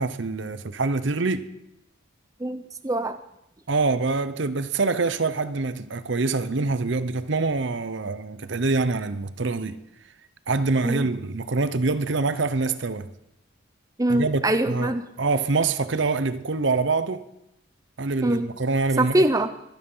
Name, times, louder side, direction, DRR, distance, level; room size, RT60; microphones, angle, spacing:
voice 1, 0.0-1.5 3.7-9.8 10.5-13.1 14.1-17.2 18.0-19.2, right 3 dB, 55° right, 0.7 m, -25 dB
voice 2, 2.4-3.2 10.8-11.0 14.0-15.0 18.2-18.5 19.0-19.6, right 1 dB, 15° right, 0.6 m, -23 dB
23.5 x 9.3 x 5.5 m
head